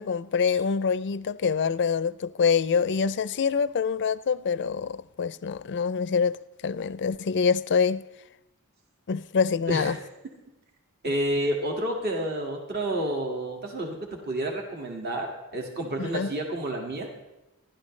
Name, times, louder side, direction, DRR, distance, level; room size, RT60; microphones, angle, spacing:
voice 1, 0.0-6.4 6.6-8.0 9.1-10.0 16.0-16.3, left 6 dB, 55° left, 0.5 m, -25 dB
voice 2, 9.7-10.1 11.0-17.1, right 1 dB, 45° right, 2.0 m, -30 dB
29.5 x 12.0 x 3.2 m
head